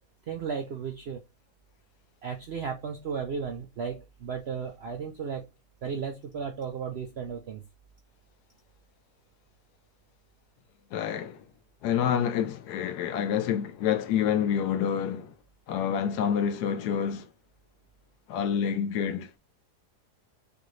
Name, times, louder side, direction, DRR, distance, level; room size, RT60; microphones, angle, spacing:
voice 1, 0.3-1.2 2.2-5.5 5.8-7.6, right 6 dB, 70° right, 0.6 m, -34 dB
voice 2, 10.9-11.4 11.8-15.3 15.7-17.3 18.3-19.3, left 8 dB, 80° left, 1.1 m, -27 dB
4.8 x 2.5 x 3.1 m
omnidirectional pair, 1.7 m